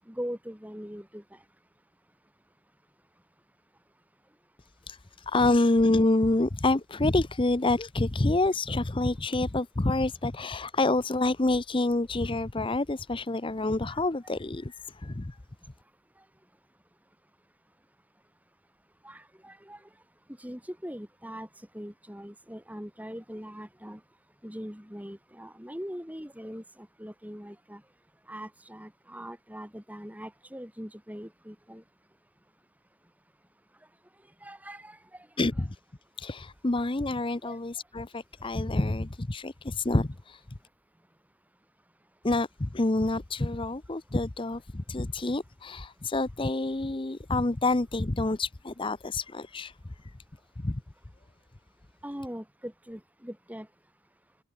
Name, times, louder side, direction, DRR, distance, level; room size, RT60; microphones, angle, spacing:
voice 1, 0.1-1.2 13.9-14.3 19.0-19.8 20.4-21.5 21.7-24.0 24.4-27.8 28.3-31.8 34.4-35.3 37.4-37.6 52.0-53.7, equal, 5° right, 7.3 m, -41 dB
voice 2, 4.9-15.4 35.4-35.8 36.2-40.4 42.2-49.8 50.0-50.2 50.6-50.8, left 2 dB, 25° left, 0.7 m, -27 dB
head